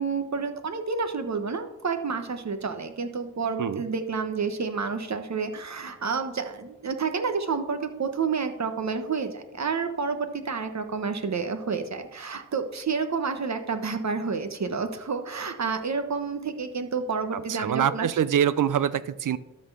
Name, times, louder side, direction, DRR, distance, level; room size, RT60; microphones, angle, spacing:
voice 1, 0.0-18.1, right 5 dB, 60° right, 8 dB, 1.2 m, -29 dB
voice 2, 17.3-19.4, right 9 dB, 85° right, 16 dB, 0.6 m, -25 dB
12.5 x 4.3 x 6.9 m, 0.94 s
cardioid pair, 55°, 31 cm